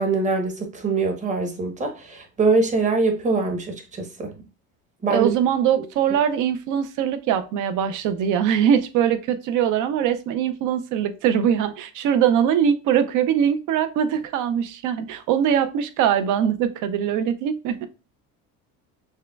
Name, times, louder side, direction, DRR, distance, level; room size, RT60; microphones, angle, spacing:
voice 1, 0.0-4.3 5.0-5.3, right 3 dB, 20° right, 0.9 m, -23 dB
voice 2, 5.1-17.9, right 9 dB, 60° right, 0.6 m, -22 dB
6.3 x 2.2 x 2.3 m
cardioid pair, 125°, 35 cm